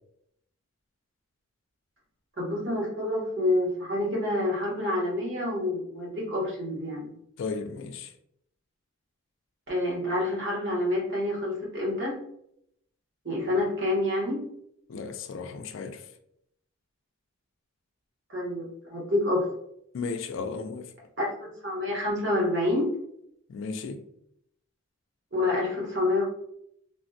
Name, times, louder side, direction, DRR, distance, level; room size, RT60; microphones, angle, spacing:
voice 1, 2.4-7.1 9.7-12.2 13.2-14.4 18.3-19.5 21.2-22.9 25.3-26.2, left 1 dB, 55° right, 1.0 m, -28 dB
voice 2, 7.4-8.1 13.6-13.7 14.9-16.1 19.9-20.9 23.5-24.0, left 4 dB, 65° left, 0.3 m, -35 dB
3.4 x 2.1 x 2.5 m
head